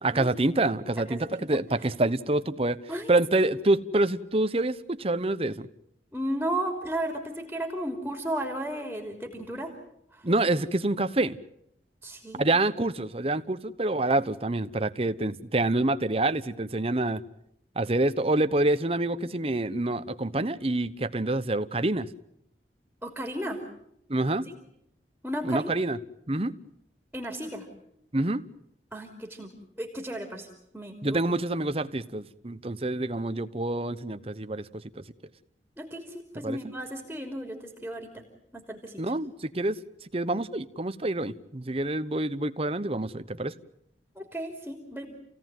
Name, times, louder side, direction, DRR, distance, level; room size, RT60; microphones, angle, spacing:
voice 1, 0.0-2.8 3.1-5.7 10.2-11.4 12.4-17.2 17.7-22.1 24.1-24.5 25.4-26.0 26.3-26.5 28.1-28.4 31.0-35.0 36.4-36.6 39.0-39.8 40.1-43.5, right 2 dB, 35° right, 11 dB, 1.0 m, -27 dB
voice 2, 1.0-1.6 2.9-3.5 6.1-9.7 10.1-10.2 12.0-12.5 23.0-23.6 24.5-24.6 25.2-25.7 27.1-27.7 28.9-29.5 29.8-30.5 30.7-31.2 35.8-38.2 38.5-39.0 44.1-45.1, right 1 dB, 5° right, 2 dB, 3.3 m, -34 dB
29.0 x 17.5 x 9.2 m, 0.76 s
head